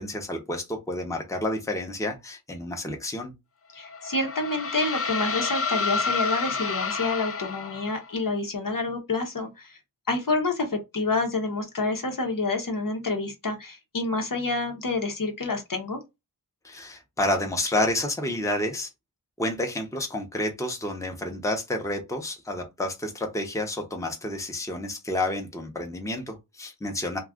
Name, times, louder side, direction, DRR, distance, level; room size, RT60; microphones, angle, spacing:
voice 1, 0.0-3.3 16.6-18.9 19.4-27.2, left 1 dB, 10° left, 0.7 m, -30 dB
voice 2, 3.7-9.8 10.1-16.0, left 3 dB, 55° left, 0.8 m, -28 dB
sound 1, 3.8-8.1, left 4 dB, 35° left, 0.4 m, -29 dB
2.4 x 2.3 x 3.5 m
wide cardioid pair, 50°, 40 cm